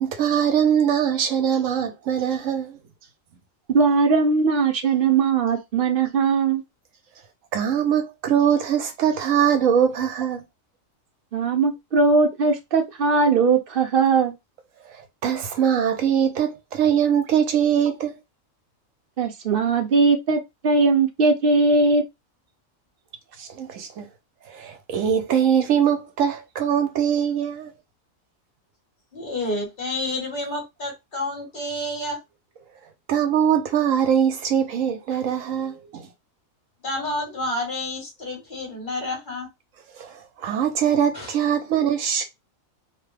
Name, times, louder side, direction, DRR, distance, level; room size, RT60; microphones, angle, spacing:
voice 1, 0.0-2.8 7.5-10.4 15.2-18.2 23.4-24.1 24.5-27.7 33.1-36.1 40.0-42.2, right 8 dB, 75° right, 1.0 m, -22 dB
voice 2, 3.7-6.6 11.3-14.3 19.2-22.0, right 4 dB, 50° right, 0.8 m, -19 dB
voice 3, 29.1-32.2 35.1-35.2 36.8-39.5 41.1-41.4, left 1 dB, 40° left, 1.6 m, -29 dB
2.9 x 2.2 x 3.2 m
omnidirectional pair, 1.4 m